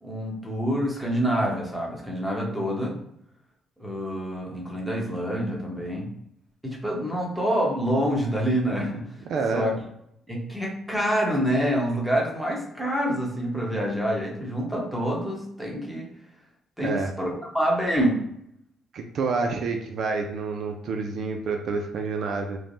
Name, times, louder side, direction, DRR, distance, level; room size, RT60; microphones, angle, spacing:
voice 1, 0.0-2.9 3.8-6.1 6.6-9.0 9.5-9.8 10.3-16.1 16.8-18.2, equal, ahead, -3 dB, 1.0 m, -26 dB
voice 2, 9.3-9.7 16.8-17.1 18.9-22.6, right 4 dB, 65° right, 4 dB, 0.4 m, -28 dB
3.1 x 2.1 x 2.6 m, 0.75 s
cardioid pair, 90°, 0 cm